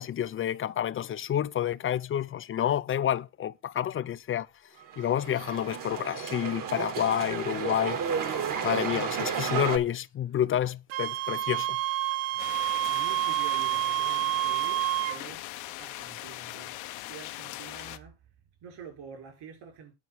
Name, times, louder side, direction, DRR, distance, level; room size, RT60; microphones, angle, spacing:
voice 1, 0.0-4.5 5.0-8.0 8.6-11.8, left 10 dB, 30° left, 0.4 m, -29 dB
sound 1, 4.8-9.8, right 7 dB, 45° right, 1.7 m, -32 dB
Wind instrument woodwind instrument, 10.9-15.2, right 14 dB, 80° right, 1.0 m, -28 dB
sound 2, 12.4-18.0, left 17 dB, 80° left, 1.0 m, -40 dB
voice 2, 12.8-16.8 17.1-18.2 18.6-19.9, right 7 dB, 60° right, 5.3 m, -47 dB
9.5 x 4.7 x 7.5 m
cardioid pair, 115°, 46 cm